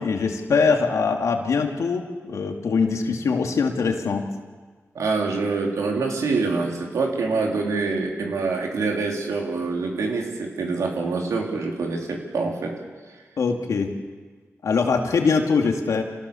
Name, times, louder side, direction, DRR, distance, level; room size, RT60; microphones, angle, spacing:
voice 1, 0.0-4.3 13.4-13.9 14.6-16.0, left 5 dB, 80° left, 3 dB, 2.5 m, -22 dB
voice 2, 4.9-12.7, right 4 dB, 90° right, 0 dB, 3.9 m, -25 dB
27.0 x 17.5 x 7.2 m, 1.4 s
cardioid pair, 60°, 5 cm